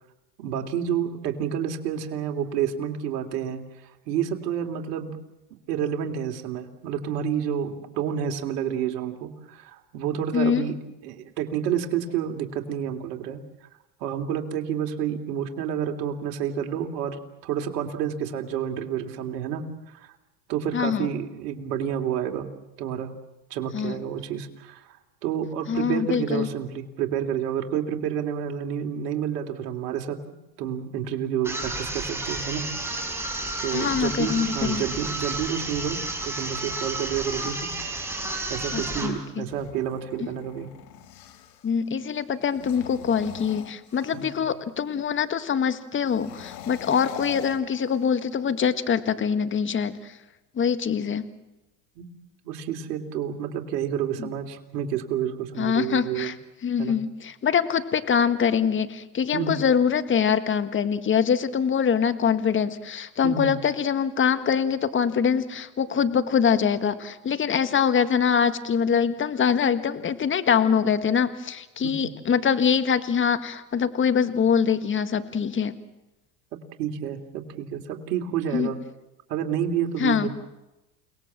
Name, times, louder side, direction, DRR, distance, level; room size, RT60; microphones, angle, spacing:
voice 1, 0.4-3.6 4.1-5.2 5.5-10.8 11.0-13.4 14.0-19.6 19.9-20.1 20.5-22.5 22.8-23.1 23.5-24.9 25.2-30.2 30.6-32.6 33.6-37.7 38.5-40.7 44.1-44.3 52.0-52.1 52.4-56.3 56.8-57.0 59.3-59.6 63.2-63.6 71.8-72.1 76.8-78.8 79.3-80.3, right 9 dB, 70° right, 4 dB, 3.1 m, -29 dB
voice 2, 10.3-10.6 20.7-21.1 23.7-24.0 25.7-26.5 33.7-34.8 38.7-39.5 41.6-50.1 50.6-51.2 54.2-54.3 55.6-56.4 56.6-75.7 78.5-78.7 80.0-80.3, left 7 dB, 25° left, 11 dB, 1.7 m, -24 dB
sound 1, 31.4-39.2, right 2 dB, 5° right, 5.2 m, -31 dB
sound 2, 37.9-41.7 42.4-44.5 46.0-48.3, left 10 dB, 80° left, 2.2 m, -43 dB
29.5 x 19.0 x 7.5 m, 0.97 s
supercardioid pair, 105°, 49 cm